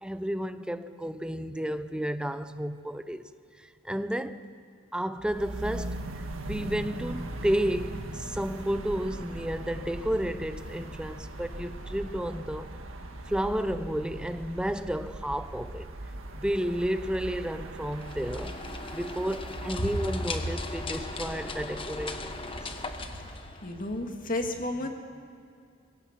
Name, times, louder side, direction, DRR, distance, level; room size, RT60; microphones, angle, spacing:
voice 1, 0.0-3.3 3.6-4.4 4.9-12.8 13.3-15.9 16.3-18.6 18.9-22.7, equal, 5° right, 0.7 m, -32 dB
sound 1, 5.2-23.5, right 1 dB, 75° right, 1.8 m, -40 dB
sound 2, 17.9-24.1, left 3 dB, 25° left, 1.2 m, -39 dB
voice 2, 23.6-24.9, left 1 dB, 45° left, 2.2 m, -31 dB
22.5 x 17.5 x 7.6 m
head